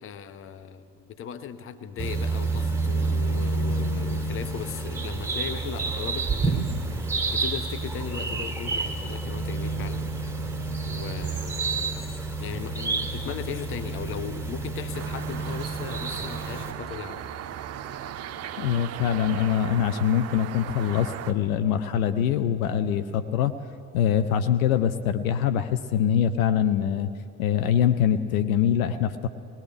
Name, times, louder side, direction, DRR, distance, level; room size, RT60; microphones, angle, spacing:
voice 1, 0.0-6.7 7.3-10.0 10.9-12.0 12.4-17.3, left 8 dB, 25° left, 12 dB, 0.8 m, -37 dB
sound 1, 2.0-16.7, right 3 dB, 5° right, 1.8 m, -29 dB
sound 2, 14.9-21.3, right 10 dB, 30° right, 0.7 m, -37 dB
voice 2, 18.6-23.5 23.9-27.1 27.4-29.3, left 9 dB, 60° left, 11 dB, 0.7 m, -24 dB
19.5 x 19.5 x 3.4 m, 2.6 s
figure-of-eight pair, 60°, 48 cm